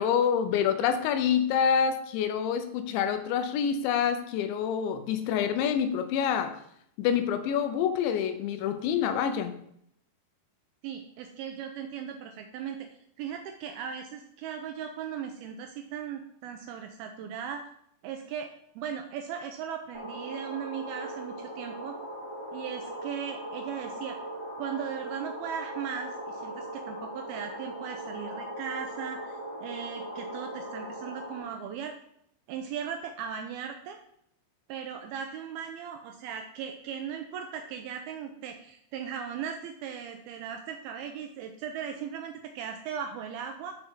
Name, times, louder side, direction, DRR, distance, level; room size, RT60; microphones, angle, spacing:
voice 1, 0.0-6.5 7.0-9.5, left 8 dB, 85° left, 8 dB, 3.1 m, -27 dB
voice 2, 10.8-12.9 13.2-17.6 18.0-22.0 22.5-24.2 24.6-32.0 32.5-34.0 34.7-43.8, right 8 dB, 90° right, 4 dB, 2.2 m, -38 dB
sound 1, 19.9-31.4, right 1 dB, 10° left, 1.7 m, -39 dB
12.0 x 5.5 x 3.7 m, 0.71 s
omnidirectional pair, 5.2 m